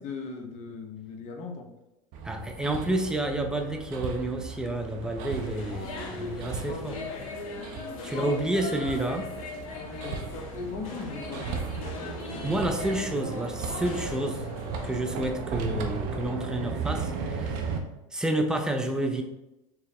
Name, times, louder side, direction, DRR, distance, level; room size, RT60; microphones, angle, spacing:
voice 1, 0.0-1.7 5.7-7.3 8.1-8.6 9.8-11.6, left 4 dB, 40° left, 4 dB, 0.8 m, -39 dB
Hammer, 2.1-17.8, right 4 dB, 55° right, 0.6 m, -36 dB
voice 2, 2.2-7.0 8.0-9.3 12.4-14.5 14.8-17.7 18.1-19.2, right 1 dB, 5° right, 4 dB, 0.5 m, -30 dB
sound 1, 5.3-15.0, left 3 dB, 75° left, 0.8 m, -40 dB
4.5 x 2.0 x 3.5 m, 0.92 s
hypercardioid pair, 95°, 18 cm